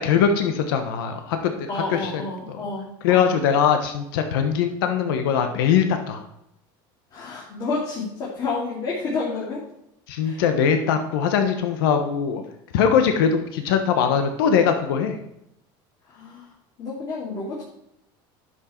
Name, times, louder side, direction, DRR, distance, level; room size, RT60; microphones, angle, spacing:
voice 1, 0.0-2.2 2.5-2.6 3.0-6.2 10.1-12.4 12.7-15.2, left 7 dB, 90° left, 6 dB, 1.2 m, -21 dB
voice 2, 1.7-3.3 7.1-9.6 10.2-10.4 16.1-16.5 16.8-17.6, left 3 dB, 35° left, -6 dB, 2.8 m, -30 dB
10.5 x 6.5 x 4.5 m, 0.79 s
cardioid pair, 145°, 11 cm